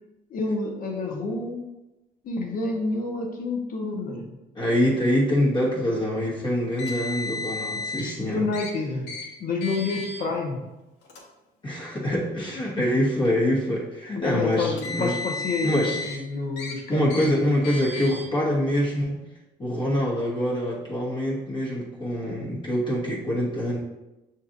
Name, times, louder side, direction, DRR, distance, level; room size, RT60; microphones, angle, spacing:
voice 1, 0.3-1.6 2.2-4.3 8.2-9.1 9.4-10.6 12.8-12.9 14.1-17.1, left 3 dB, 55° left, 1 dB, 0.9 m, -28 dB
voice 2, 4.5-8.5 11.6-15.2 15.6-16.0 16.9-19.2 19.6-23.8, equal, 30° left, -5 dB, 1.0 m, -25 dB
Car, 6.8-8.1 8.5-8.7 9.1-9.2 9.6-10.2 11.0-11.2 12.1-12.2 14.5-16.2 16.6-16.7 17.1-17.3 17.6-18.2, left 3 dB, 80° left, 1.1 m, -33 dB
6.4 x 2.8 x 2.5 m, 0.99 s
cardioid pair, 110°, 17 cm